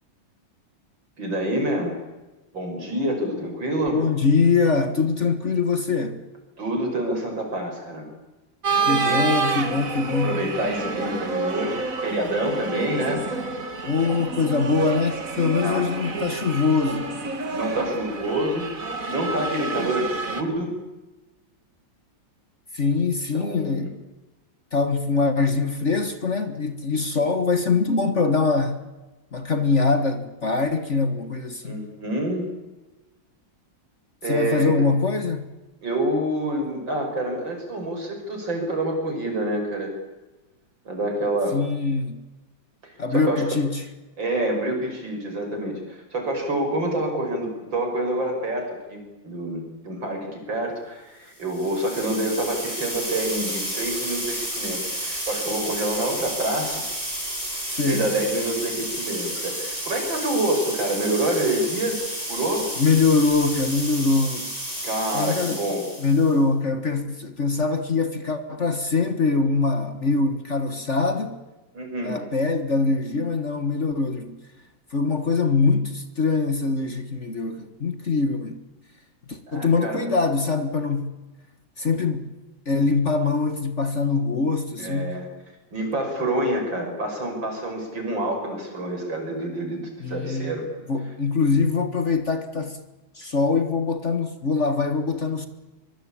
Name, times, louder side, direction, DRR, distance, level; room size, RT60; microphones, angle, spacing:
voice 1, 1.2-2.0 2.5-4.0 6.6-8.1 10.2-13.2 15.6-15.9 17.5-18.7 19.1-20.7 23.3-23.9 31.6-32.5 34.2-34.7 35.8-39.9 40.8-41.6 42.8-43.5 44.2-56.8 57.8-62.0 62.3-62.7 64.8-65.9 71.7-72.2 79.5-80.0 84.8-85.3 85.7-90.6, right 1 dB, 70° right, 6.8 m, -27 dB
voice 2, 3.9-6.2 8.8-10.4 13.8-17.2 22.7-23.9 24.7-28.8 29.3-31.8 34.3-35.5 41.5-42.2 43.0-43.8 57.7-58.1 62.8-64.5 65.1-65.6 66.0-71.4 72.0-74.4 74.9-78.6 79.3-81.1 81.8-82.3 82.6-85.2 90.0-90.6 90.9-92.8 93.1-95.5, left 4 dB, 40° left, 1.7 m, -23 dB
sound 1, 8.6-20.4, right 4 dB, 45° right, 2.3 m, -28 dB
sound 2, 51.4-66.4, right 1 dB, 20° right, 7.0 m, -31 dB
24.0 x 24.0 x 8.7 m
omnidirectional pair, 2.1 m